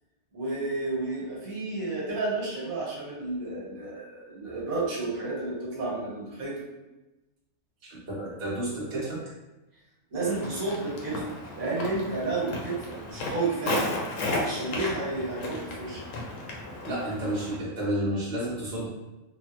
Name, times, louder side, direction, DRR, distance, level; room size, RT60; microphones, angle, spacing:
voice 1, 0.3-6.6 10.1-11.2 11.5-13.9 14.4-16.0, right 3 dB, 80° right, -5 dB, 1.5 m, -31 dB
voice 2, 7.8-9.2 16.9-18.9, right 1 dB, 35° right, -7 dB, 1.0 m, -31 dB
Walk footsteps, 10.2-17.6, left 2 dB, 70° left, 1.0 m, -34 dB
3.6 x 2.1 x 2.9 m, 1.1 s
omnidirectional pair, 1.4 m